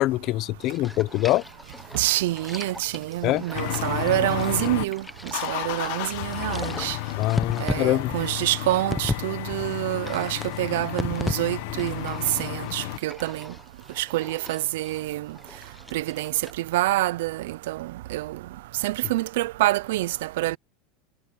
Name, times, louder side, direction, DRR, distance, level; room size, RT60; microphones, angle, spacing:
voice 1, 0.0-1.4 3.2-3.4 7.2-8.1, left 16 dB, 50° left, 0.9 m, -24 dB
sound 1, 0.6-9.2 9.5-11.4 11.7-16.5, left 2 dB, 5° left, 1.1 m, -37 dB
voice 2, 1.9-7.0 7.6-13.5 14.0-15.4 15.9-18.4 18.8-20.6, right 17 dB, 80° right, 0.7 m, -27 dB
sound 2, 3.5-4.8 5.3-13.0, left 20 dB, 70° left, 1.3 m, -32 dB
supercardioid pair, 125°, 0 cm